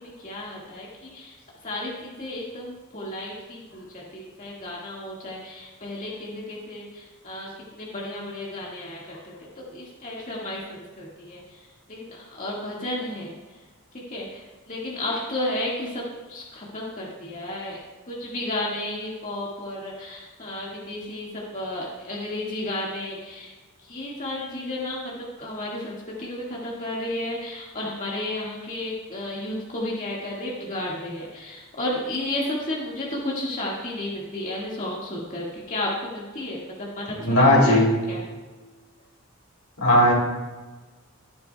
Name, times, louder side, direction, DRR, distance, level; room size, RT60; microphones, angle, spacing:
voice 1, 0.0-1.4 1.6-13.3 13.9-16.0 16.3-17.8 18.1-23.5 23.8-37.8 38.1-38.2, left 1 dB, 35° left, -4 dB, 1.9 m, -33 dB
voice 2, 37.1-37.9 39.8-40.1, left 1 dB, 85° left, -2 dB, 2.9 m, -17 dB
15.0 x 9.3 x 2.3 m, 1.3 s
head